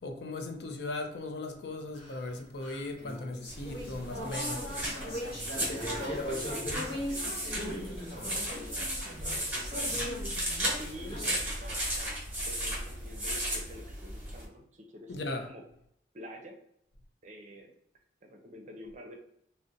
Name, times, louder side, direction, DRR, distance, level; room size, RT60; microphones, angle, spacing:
voice 1, 0.0-4.9 15.1-15.5, left 2 dB, 65° left, 0.5 m, -38 dB
sound 1, 2.0-11.3, left 1 dB, 30° left, 1.0 m, -39 dB
sound 2, 3.5-14.4, right 1 dB, 10° right, 1.0 m, -35 dB
voice 2, 5.9-10.5 10.8-12.2 12.4-15.1 15.4-15.6 16.1-16.6 17.2-17.7 18.2-19.2, equal, 40° right, 0.5 m, -48 dB
2.5 x 2.0 x 3.8 m
head